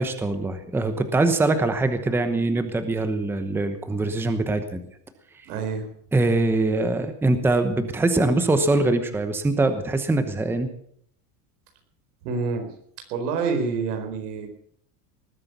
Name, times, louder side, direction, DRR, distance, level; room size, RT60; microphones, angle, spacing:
voice 1, 0.0-4.9 6.1-10.7, right 2 dB, 5° right, 9 dB, 0.9 m, -23 dB
voice 2, 5.4-5.9 12.2-12.7 13.1-14.5, right 4 dB, 90° right, 5 dB, 4.5 m, -27 dB
19.5 x 9.6 x 6.8 m, 0.65 s
supercardioid pair, 155°, 45 cm